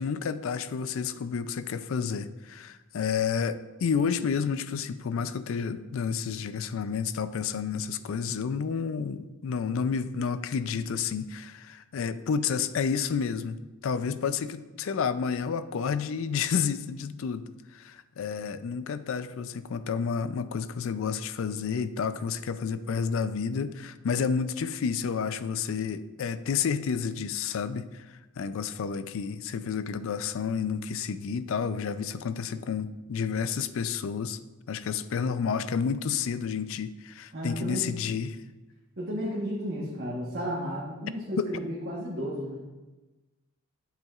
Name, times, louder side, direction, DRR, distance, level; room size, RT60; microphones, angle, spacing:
voice 1, 0.0-28.1 28.4-34.4 34.7-38.4 41.4-41.5, left 6 dB, 65° left, 13 dB, 0.4 m, -30 dB
voice 2, 37.3-38.0 39.0-42.6, equal, 50° right, -5 dB, 1.2 m, -33 dB
8.9 x 7.6 x 2.4 m, 1.2 s
head